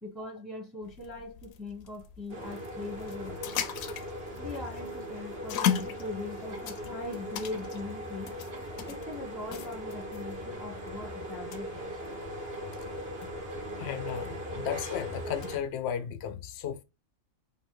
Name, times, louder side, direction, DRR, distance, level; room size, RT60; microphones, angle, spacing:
voice 1, 0.0-3.6 4.4-8.4 8.9-12.0, left 2 dB, ahead, 1.0 m, -41 dB
sound 1, 0.8-15.7, left 9 dB, 85° left, 1.0 m, -39 dB
sound 2, 2.3-15.6, equal, 45° right, 1.5 m, -39 dB
sound 3, 2.5-2.7 3.5-3.7 4.5-4.7 5.5-5.7 6.5-6.8 7.0-7.8 8.1-8.2 8.5-8.8 9.5-9.7 10.5-10.7 11.3-11.7 12.5-12.7 13.5-13.7 14.5-14.7 15.5-15.7, right 4 dB, 75° right, 1.4 m, -55 dB
voice 2, 13.8-16.8, left 9 dB, 60° left, 0.7 m, -35 dB
4.5 x 2.8 x 3.0 m
omnidirectional pair, 1.4 m